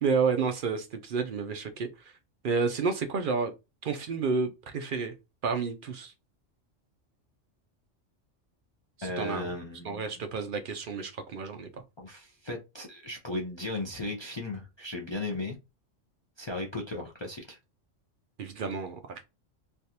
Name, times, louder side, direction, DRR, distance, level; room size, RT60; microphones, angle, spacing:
voice 1, 0.0-2.1 2.4-3.5 3.8-5.1 5.4-6.1 9.0-9.5 9.8-11.8 18.4-19.3, right 5 dB, 60° right, 0.5 m, -30 dB
voice 2, 9.0-10.0 12.0-15.6 16.4-17.6, left 2 dB, 40° left, 0.4 m, -36 dB
3.3 x 2.4 x 2.8 m
omnidirectional pair, 1.3 m